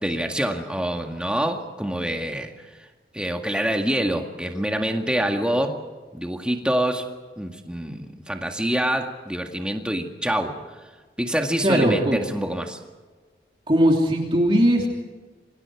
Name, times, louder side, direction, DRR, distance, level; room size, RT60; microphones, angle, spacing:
voice 1, 0.0-2.5 3.1-5.8 6.1-7.1 7.4-10.6 11.2-12.8, right 1 dB, 5° right, 3 dB, 1.9 m, -26 dB
voice 2, 11.6-12.2 13.7-14.9, equal, 30° right, 0 dB, 3.0 m, -19 dB
28.5 x 24.5 x 4.8 m, 1.3 s
head